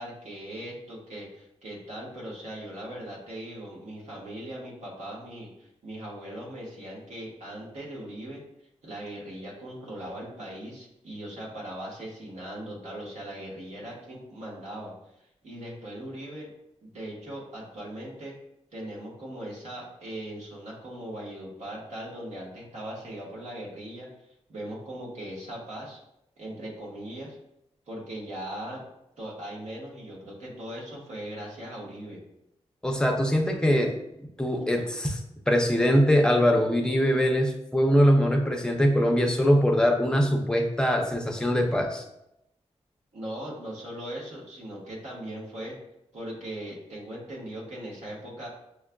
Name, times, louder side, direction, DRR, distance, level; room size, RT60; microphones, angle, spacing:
voice 1, 0.0-8.4 8.8-16.5 16.9-18.4 18.7-24.1 24.5-26.0 26.4-27.4 27.9-28.8 29.2-32.2 43.1-45.8 46.1-48.5, right 1 dB, 85° right, -4 dB, 1.2 m, -39 dB
voice 2, 32.8-33.9 34.4-35.2 35.5-42.0, equal, 5° left, 2 dB, 0.4 m, -22 dB
6.3 x 2.4 x 2.2 m, 0.84 s
wide cardioid pair, 160°, 12 cm